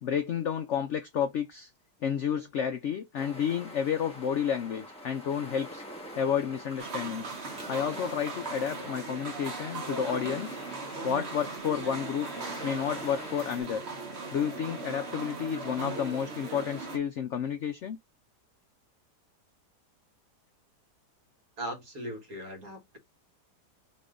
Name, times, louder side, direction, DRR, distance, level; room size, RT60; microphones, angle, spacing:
voice 1, 0.0-1.7 2.0-5.8 6.2-7.3 7.7-10.5 11.0-12.3 12.6-13.8 14.3-18.0, left 8 dB, 70° left, 0.7 m, -31 dB
sound 1, 3.2-13.6, equal, 5° left, 1.6 m, -45 dB
sound 2, 6.8-17.0, right 3 dB, 40° right, 1.4 m, -39 dB
voice 2, 21.6-23.0, equal, 55° right, 1.9 m, -39 dB
4.2 x 3.2 x 3.8 m
omnidirectional pair, 1.8 m